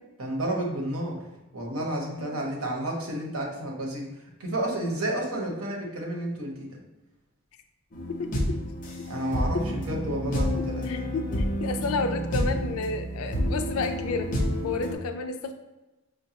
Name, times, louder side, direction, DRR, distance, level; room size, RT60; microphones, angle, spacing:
voice 1, 0.2-1.2 1.5-4.1 4.4-6.7 9.1-10.8, right 1 dB, 85° right, -1 dB, 0.9 m, -31 dB
sound 1, 7.9-14.9, equal, 40° left, 0.6 m, -29 dB
voice 2, 8.2-8.6 9.5-9.6 10.5-15.5, left 4 dB, 85° left, 7 dB, 0.4 m, -31 dB
5.2 x 2.2 x 2.8 m, 1.0 s
head